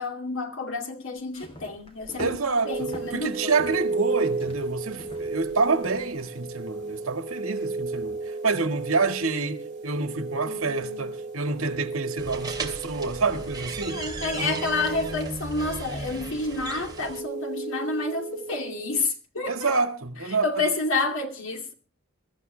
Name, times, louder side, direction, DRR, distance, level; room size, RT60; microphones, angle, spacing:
voice 1, 0.0-2.4 2.6-3.6 10.5-11.1 13.9-19.7 20.4-21.7, left 3 dB, 70° left, 2.4 m, -29 dB
sound 1, 1.2-6.3, equal, 25° left, 3.2 m, -44 dB
voice 2, 2.2-14.1 14.4-14.6 19.4-20.6, right 4 dB, 85° right, 1.8 m, -28 dB
sound 2, 2.7-19.0, right 3 dB, 35° right, 2.4 m, -34 dB
sound 3, 12.2-17.2, right 3 dB, 20° right, 2.5 m, -36 dB
22.5 x 13.5 x 3.3 m
head